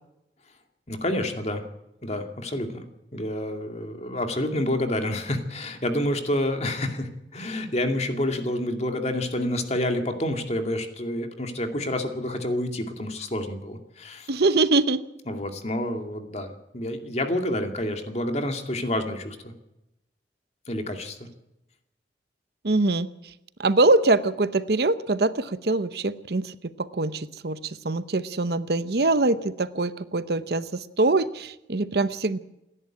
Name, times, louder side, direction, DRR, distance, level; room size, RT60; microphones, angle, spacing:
voice 1, 0.9-1.6 2.0-2.8 3.1-14.3 15.3-19.5 20.7-21.2, left 1 dB, 35° left, 5 dB, 2.3 m, -28 dB
voice 2, 14.3-15.0 22.6-23.1 23.6-32.4, right 2 dB, 60° right, 14 dB, 0.8 m, -23 dB
28.5 x 11.0 x 8.9 m, 0.90 s
head